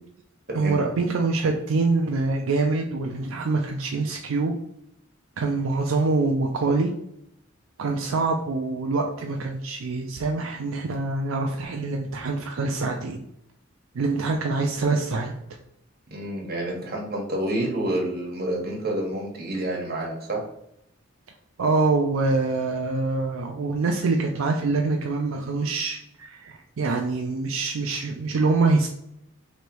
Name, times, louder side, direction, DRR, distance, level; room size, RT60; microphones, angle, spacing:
voice 1, 0.5-4.5 5.4-6.9 7.8-13.2 14.0-15.3 21.6-28.9, right 3 dB, 75° right, 2 dB, 0.4 m, -25 dB
voice 2, 16.1-20.4, right 1 dB, 50° right, -2 dB, 1.3 m, -28 dB
3.2 x 3.0 x 4.6 m, 0.77 s
head